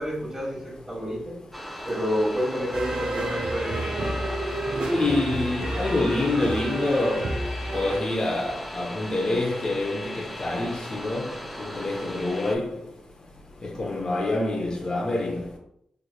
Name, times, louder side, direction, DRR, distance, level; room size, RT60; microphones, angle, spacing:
voice 1, 0.0-1.4 1.8-4.2, equal, 25° right, 1.4 m, -29 dB
sound 1, 1.5-12.6, left 1 dB, ahead, 0.5 m, -38 dB
sound 2, 2.7-8.0, right 1 dB, 65° right, 0.7 m, -29 dB
voice 2, 4.9-7.4 7.7-12.8 13.6-15.6, left 2 dB, 40° left, 0.6 m, -27 dB
3.2 x 3.1 x 2.3 m
cardioid pair, 60°, 2 cm